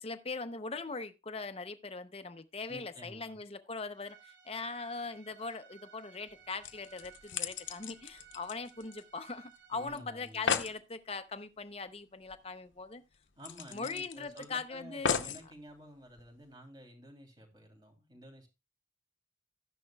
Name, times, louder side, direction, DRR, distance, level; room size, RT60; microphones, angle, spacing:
voice 1, 0.0-13.0 13.7-15.2, left 4 dB, 30° left, 0.7 m, -41 dB
voice 2, 2.7-3.4 9.7-10.6 13.4-18.5, equal, 20° right, 3.0 m, -52 dB
Bowed string instrument, 3.9-9.9, right 9 dB, 85° right, 5.3 m, -59 dB
sound 1, 6.3-6.4 6.6-9.3 9.6-9.7 10.0-10.1 10.3-10.8 12.3-12.4 12.7-12.8 13.4-14.4 15.0-15.5 16.2-16.3, left 6 dB, 80° left, 0.8 m, -35 dB
13.5 x 10.5 x 2.3 m
head